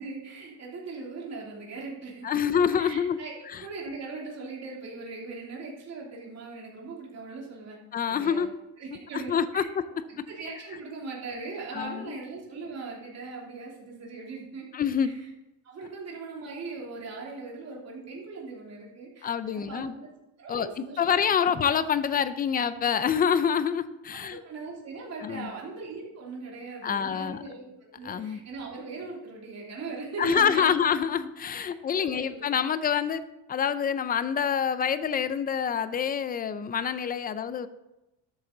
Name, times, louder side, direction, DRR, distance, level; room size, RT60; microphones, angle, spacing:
voice 1, 0.0-2.2 2.8-7.8 8.1-8.4 8.8-9.7 10.1-14.6 15.0-15.1 15.6-20.1 20.4-21.6 24.1-30.7 31.6-32.5, right 4 dB, 35° right, -3 dB, 3.0 m, -40 dB
voice 2, 2.2-3.2 3.5-3.6 7.9-8.5 9.1-9.6 11.7-12.2 14.7-15.1 19.2-19.9 20.5-24.4 25.2-25.5 26.8-27.4 28.0-28.4 30.2-33.2 33.5-37.7, left 7 dB, 25° left, 13 dB, 0.4 m, -26 dB
12.5 x 8.0 x 3.9 m, 0.95 s
cardioid pair, 160°, 42 cm